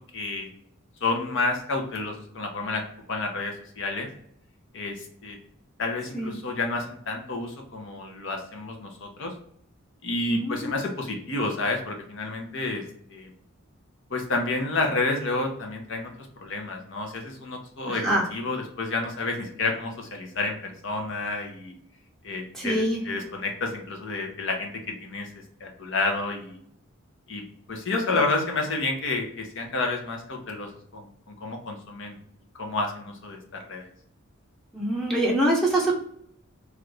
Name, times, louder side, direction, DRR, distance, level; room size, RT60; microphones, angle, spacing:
voice 1, 0.1-0.5 1.0-2.8 3.1-4.1 4.7-5.4 5.8-9.3 10.0-12.8 13.1-13.3 14.1-16.1 16.4-18.0 18.3-21.7 22.2-24.7 25.0-25.3 25.6-26.6 27.3-27.4 27.7-32.2 32.6-33.9, left 3 dB, 65° left, 2 dB, 0.8 m, -30 dB
voice 2, 10.3-10.7 17.9-18.2 22.5-23.0 34.7-35.9, right 1 dB, ahead, -4 dB, 0.7 m, -24 dB
3.2 x 2.5 x 3.2 m, 0.67 s
head